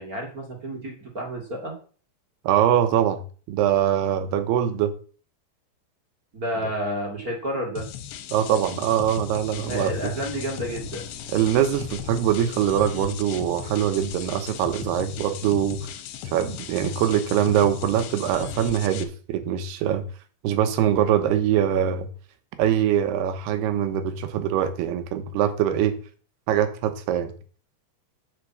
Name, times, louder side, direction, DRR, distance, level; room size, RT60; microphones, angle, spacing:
voice 1, 0.0-1.7 6.3-7.9 9.7-11.0, equal, 35° right, 0 dB, 1.5 m, -30 dB
voice 2, 2.4-3.2 3.5-4.9 8.3-10.1 11.3-15.9 16.3-20.0 20.4-22.1 22.6-26.0 26.5-27.3, right 10 dB, 75° right, 9 dB, 3.0 m, -23 dB
sound 1, 7.8-19.0, left 10 dB, 85° left, 3.3 m, -38 dB
sound 2, 9.5-15.8, left 2 dB, 55° left, 1.8 m, -43 dB
8.3 x 6.0 x 7.6 m, 0.40 s
omnidirectional pair, 5.0 m